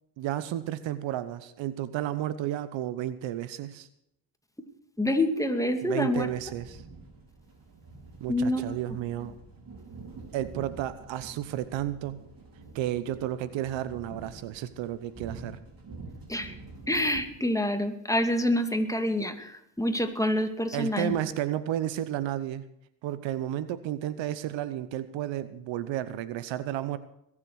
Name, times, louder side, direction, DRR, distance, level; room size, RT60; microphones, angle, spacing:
voice 1, 0.2-3.9 5.8-6.8 8.2-9.3 10.3-12.2 12.7-15.6 20.7-22.6 23.0-27.0, right 12 dB, 80° right, 15 dB, 1.0 m, -32 dB
voice 2, 5.0-6.3 8.3-8.8 16.3-16.5 16.9-21.2, left 1 dB, 5° left, 6 dB, 2.4 m, -27 dB
sound 1, 6.1-17.2, right 3 dB, 50° right, 4.8 m, -47 dB
21.5 x 7.4 x 6.3 m, 0.77 s
supercardioid pair, 55°, 45 cm